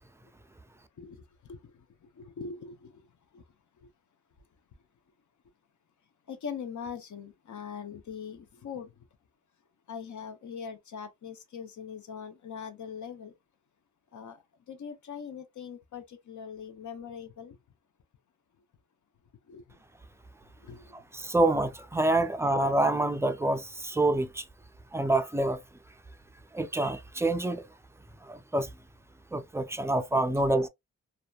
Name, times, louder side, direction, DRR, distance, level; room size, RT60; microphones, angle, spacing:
voice 1, 1.0-3.1 3.3-3.4 3.8-3.9 6.3-8.9 9.9-13.3 14.1-14.4 14.7-17.6 19.5-19.8 20.6-20.9, left 6 dB, 65° left, 0.7 m, -42 dB
voice 2, 21.1-24.4 24.9-25.6 26.5-27.6 28.3-28.7 29.3-30.7, right 2 dB, 10° right, 0.4 m, -27 dB
2.8 x 2.2 x 2.2 m
cardioid pair, 75°, 31 cm